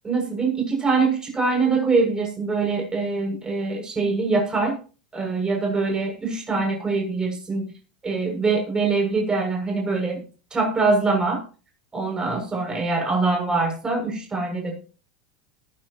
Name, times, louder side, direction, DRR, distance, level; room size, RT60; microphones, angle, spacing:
voice 1, 0.0-4.8 5.1-7.7 8.0-10.2 10.5-11.4 11.9-14.8, right 3 dB, 20° right, 0 dB, 7.3 m, -23 dB
20.0 x 11.5 x 3.1 m, 0.36 s
hypercardioid pair, 85°, 4 cm